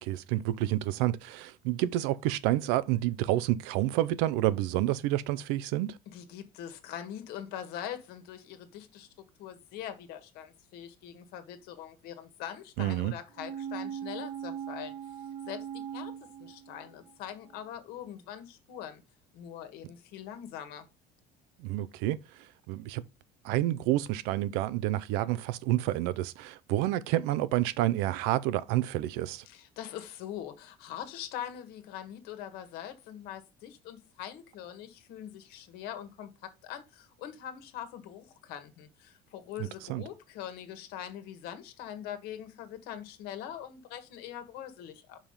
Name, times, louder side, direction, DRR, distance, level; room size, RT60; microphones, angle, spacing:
voice 1, 0.0-6.0 12.8-13.1 21.6-22.2 22.7-23.0 23.4-29.4 39.9-40.0, right 15 dB, 90° right, 0.6 m, -29 dB
voice 2, 6.1-9.1 9.4-14.9 15.5-16.1 16.4-19.0 19.3-20.9 29.4-36.3 36.6-45.2, left 10 dB, 70° left, 1.5 m, -42 dB
sound 1, 13.3-17.1 17.5-17.6, right 9 dB, 35° right, 0.9 m, -40 dB
5.6 x 5.1 x 5.1 m
cardioid pair, 135°, 16 cm